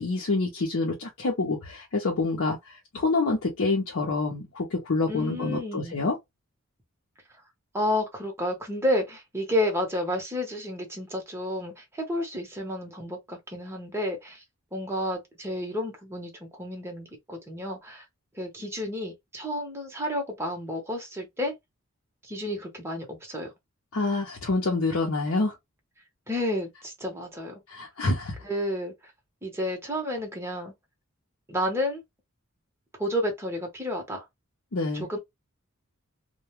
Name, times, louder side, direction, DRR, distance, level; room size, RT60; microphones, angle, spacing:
voice 1, 0.0-6.2 23.9-25.6 27.7-28.4 34.7-35.1, left 3 dB, 65° left, 0.7 m, -27 dB
voice 2, 5.1-5.9 7.7-14.4 14.7-18.0 18.3-21.5 22.2-23.5 26.3-27.6 28.4-29.1 29.4-30.7 31.5-32.0 33.0-34.2 34.9-35.2, left 1 dB, 10° right, 0.9 m, -31 dB
2.2 x 2.2 x 3.0 m
head